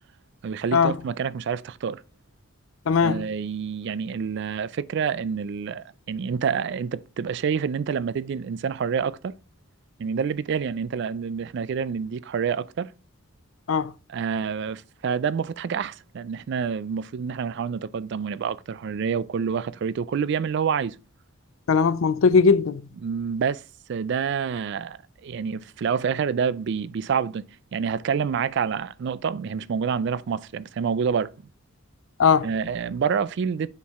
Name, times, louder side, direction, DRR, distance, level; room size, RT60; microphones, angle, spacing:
voice 1, 0.4-2.0 3.0-9.3 10.0-12.9 14.1-21.0 23.0-23.6 23.9-27.4 27.7-31.3 32.4-33.7, right 6 dB, 55° right, 0.3 m, -27 dB
voice 2, 2.9-3.2 13.7-13.9 21.7-22.8 32.2-32.5, left 5 dB, 70° left, 0.4 m, -19 dB
7.1 x 4.5 x 3.5 m
head